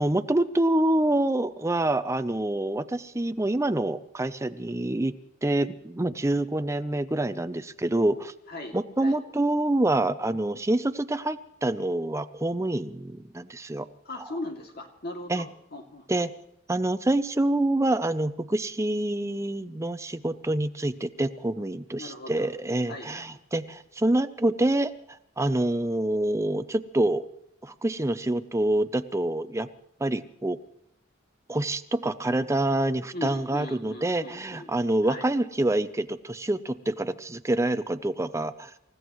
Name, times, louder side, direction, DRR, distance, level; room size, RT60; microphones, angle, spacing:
voice 1, 0.0-5.1 5.4-8.3 8.7-13.9 15.3-15.4 16.1-16.3 16.7-24.9 25.4-27.2 27.6-29.7 30.0-30.6 31.5-38.7, right 1 dB, 15° right, 12 dB, 0.6 m, -26 dB
voice 2, 8.5-9.2 14.0-16.2 22.0-22.5 22.9-23.3 33.1-34.7 35.0-35.3, left 2 dB, 55° left, 3 dB, 2.5 m, -39 dB
28.0 x 15.5 x 3.1 m, 0.75 s
head